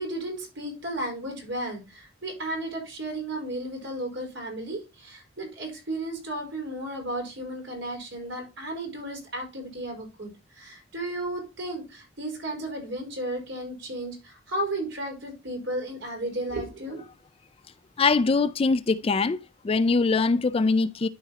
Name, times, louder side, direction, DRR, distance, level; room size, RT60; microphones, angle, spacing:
voice 1, 0.0-17.0, right 1 dB, 65° right, 4.7 m, -34 dB
voice 2, 18.0-19.4 19.6-21.1, left 4 dB, 30° left, 0.3 m, -22 dB
12.5 x 4.7 x 2.8 m
head